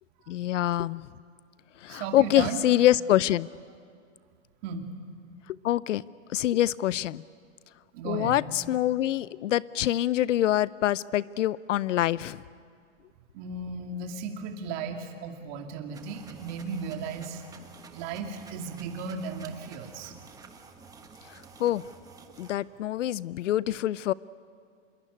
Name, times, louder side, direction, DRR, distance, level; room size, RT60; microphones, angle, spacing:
voice 1, 0.3-1.1 1.8-3.5 5.6-6.0 6.3-7.2 8.0-12.4 21.3-21.8 22.4-24.1, left 13 dB, 75° left, 20 dB, 0.6 m, -25 dB
voice 2, 1.9-2.6 4.6-4.9 7.9-8.4 13.3-17.4 17.9-20.2, right 5 dB, 35° right, 4 dB, 2.6 m, -35 dB
sound 1, 15.9-22.5, right 4 dB, 10° right, 1.4 m, -50 dB
26.5 x 22.0 x 9.9 m, 2.1 s
hypercardioid pair, 155°, 38 cm